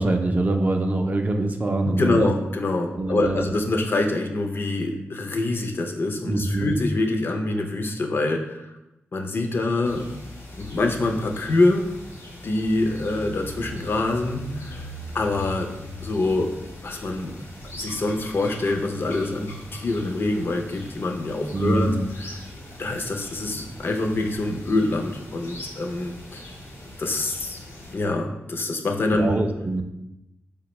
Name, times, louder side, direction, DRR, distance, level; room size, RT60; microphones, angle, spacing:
voice 1, 0.0-2.3 3.0-3.4 6.3-6.7 21.5-22.0 29.2-29.8, right 2 dB, 35° right, 4 dB, 0.3 m, -24 dB
voice 2, 1.8-8.7 9.1-10.1 10.6-11.9 12.4-15.7 16.0-16.5 16.8-17.4 17.7-22.4 22.8-26.4 27.0-27.6 27.9-29.4, left 2 dB, 55° left, 3 dB, 0.4 m, -25 dB
sound 1, 9.8-28.0, left 1 dB, 70° left, 0.8 m, -40 dB
4.5 x 2.1 x 2.9 m, 0.91 s
wide cardioid pair, 105°, 5 cm